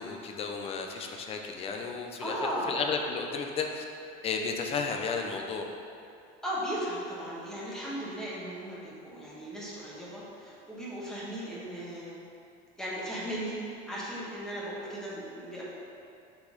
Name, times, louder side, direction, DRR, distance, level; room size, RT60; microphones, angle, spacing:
voice 1, 0.0-2.4 2.7-3.8 4.2-5.7, left 5 dB, 30° left, 3 dB, 0.6 m, -33 dB
voice 2, 2.2-2.7 6.4-12.1 12.8-15.6, equal, 5° left, -8 dB, 1.4 m, -36 dB
5.7 x 4.1 x 5.2 m, 2.6 s
cardioid pair, 150°, 19 cm